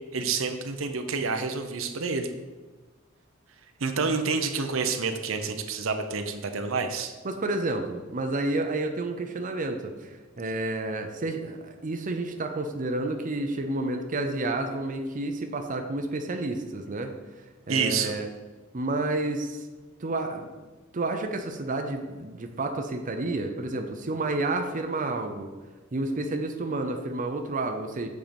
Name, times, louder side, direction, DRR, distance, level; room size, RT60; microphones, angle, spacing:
voice 1, 0.1-2.3 3.8-7.1 17.7-18.1, right 4 dB, 80° right, 7 dB, 0.7 m, -28 dB
voice 2, 7.2-17.1 17.7-18.3 18.7-19.6 20.0-20.5 20.9-25.5 25.9-28.1, right 2 dB, 40° right, 5 dB, 0.7 m, -30 dB
7.4 x 4.6 x 5.2 m, 1.3 s
head